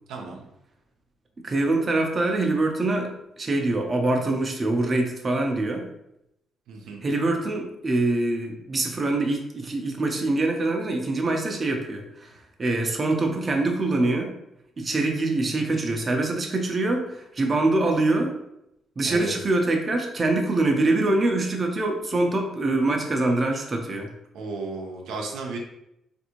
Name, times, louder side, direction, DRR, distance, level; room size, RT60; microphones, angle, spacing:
voice 1, 0.1-0.4 6.7-7.1 19.0-19.4 24.3-25.6, right 3 dB, 90° right, 0 dB, 0.5 m, -34 dB
voice 2, 1.4-3.1 3.4-5.9 7.0-14.3 14.8-18.3 19.0-24.1, right 2 dB, 35° right, 2 dB, 0.5 m, -24 dB
3.4 x 2.6 x 2.9 m, 0.82 s
cardioid pair, 90°, 0 cm